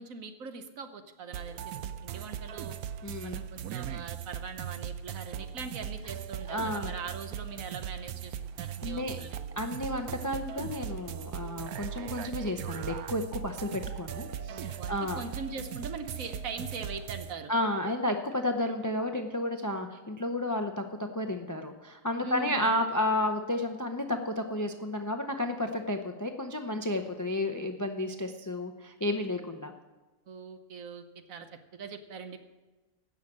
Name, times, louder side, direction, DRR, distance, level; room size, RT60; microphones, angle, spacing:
voice 1, 0.0-2.8 3.2-9.4 14.5-17.5 22.2-22.9 30.3-31.5 31.7-32.4, right 4 dB, 70° right, 8 dB, 1.4 m, -42 dB
sound 1, 1.3-17.3, right 9 dB, 85° right, 1.1 m, -39 dB
voice 2, 3.0-3.4 6.5-6.9 8.6-9.2 9.6-15.2 17.5-29.7, left 1 dB, 25° left, 6 dB, 0.4 m, -32 dB
sound 2, 11.4-17.3, left 1 dB, 10° left, 5.8 m, -51 dB
16.0 x 6.5 x 7.4 m, 1.2 s
omnidirectional pair, 1.5 m